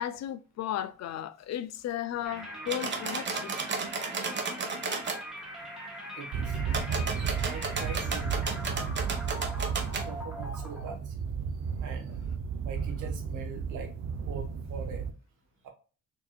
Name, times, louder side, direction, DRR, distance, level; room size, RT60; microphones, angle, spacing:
voice 1, 0.0-3.6, left 11 dB, 60° left, 0.5 m, -35 dB
sound 1, 2.2-11.0, equal, ahead, 1.3 m, -42 dB
sound 2, 2.7-5.2 6.7-10.1, right 4 dB, 40° right, 0.9 m, -34 dB
voice 2, 6.2-6.6 7.5-8.6 10.0-11.1 11.8-12.2 12.6-13.9 14.3-15.0 15.6-15.7, right 5 dB, 80° right, 1.2 m, -42 dB
sound 3, 6.3-15.1, right 6 dB, 60° right, 0.6 m, -33 dB
4.5 x 2.7 x 2.2 m
cardioid pair, 90°, 30 cm